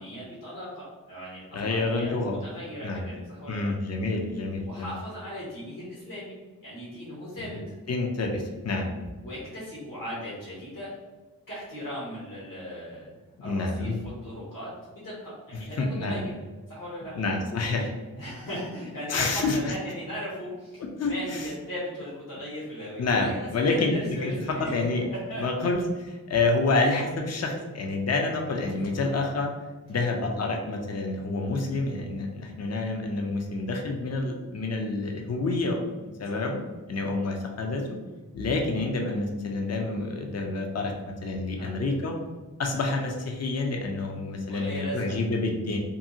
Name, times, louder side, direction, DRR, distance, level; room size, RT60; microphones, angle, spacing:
voice 1, 0.0-3.7 4.7-7.8 9.2-11.0 11.5-13.1 13.4-16.3 16.7-17.2 18.2-24.8 25.1-25.4 29.0-29.2 29.9-30.0 36.2-36.5 41.5-41.7 44.5-45.2, equal, 65° left, -8 dB, 1.1 m, -38 dB
voice 2, 1.5-2.4 2.8-3.1 3.5-5.0 7.4-7.6 7.9-8.9 13.4-14.0 15.8-16.2 17.2-17.9 19.1-19.7 21.0-21.4 23.0-24.3 24.6-25.0 25.4-25.8 26.3-29.5 29.9-35.8 36.2-36.6 36.9-37.8 38.3-42.2 42.6-45.8, left 3 dB, 45° left, 2 dB, 0.6 m, -28 dB
2.7 x 2.7 x 2.6 m, 1.2 s
cardioid pair, 40°, 36 cm